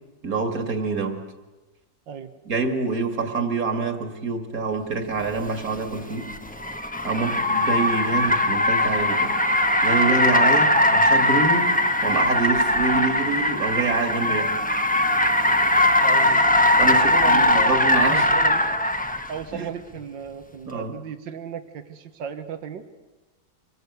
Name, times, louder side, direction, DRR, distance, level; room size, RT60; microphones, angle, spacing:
voice 1, 0.2-1.2 2.5-6.3 7.0-9.4 9.8-11.7 12.0-14.5 16.8-18.3 19.5-19.7 20.7-20.9, right 4 dB, 50° right, 6 dB, 2.5 m, -26 dB
Car, 5.4-19.3, left 1 dB, 5° left, 0.7 m, -20 dB
voice 2, 16.0-16.4 16.9-17.7 18.1-18.6 19.3-22.8, right 7 dB, 80° right, 9 dB, 2.0 m, -35 dB
26.0 x 21.5 x 8.2 m, 1.1 s
omnidirectional pair, 2.0 m